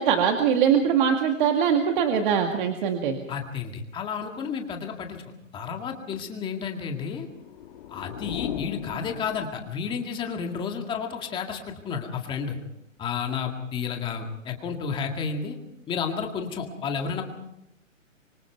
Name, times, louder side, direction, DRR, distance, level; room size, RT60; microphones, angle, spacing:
voice 1, 0.0-3.2, right 7 dB, 40° right, 4 dB, 2.1 m, -22 dB
voice 2, 3.3-5.2 5.5-7.3 7.9-12.6 13.0-15.6 15.9-17.2, left 6 dB, 10° left, 3 dB, 2.0 m, -31 dB
sound 1, 7.3-10.0, left 10 dB, 40° left, 1.7 m, -37 dB
25.5 x 25.0 x 4.6 m, 0.79 s
hypercardioid pair, 160°, 40 cm